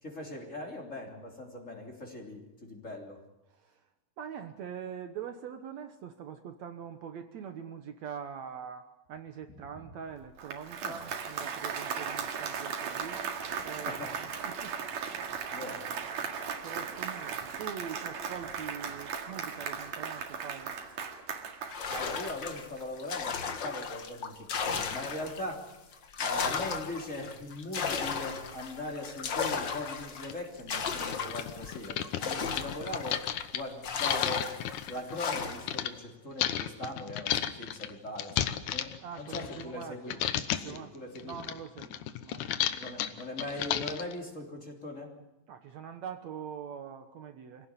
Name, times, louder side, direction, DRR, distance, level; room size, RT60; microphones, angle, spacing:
voice 1, 0.0-3.2 10.8-11.0 13.6-14.2 15.5-15.8 21.9-25.8 26.2-34.5 34.8-38.9 39.2-41.4 42.8-45.1, left 1 dB, 25° left, 1 dB, 3.4 m, -40 dB
voice 2, 3.5-3.9 4.2-13.2 13.6-15.2 15.6-20.8 32.3-32.6 39.0-40.2 40.6-41.0 41.2-43.0 45.5-47.7, right 8 dB, 65° right, 7 dB, 2.2 m, -44 dB
Applause, 10.2-22.8, right 6 dB, 80° right, 3.5 m, -37 dB
sound 1, 21.7-25.5 25.9-33.4 33.8-35.8, left 6 dB, 45° left, 1.6 m, -35 dB
sound 2, 29.6-29.7 30.3-30.4 30.7-35.9 36.4-39.8 40.1-40.8 41.1-44.1, left 11 dB, 75° left, 2.4 m, -33 dB
25.5 x 17.0 x 9.7 m, 0.97 s
omnidirectional pair, 3.7 m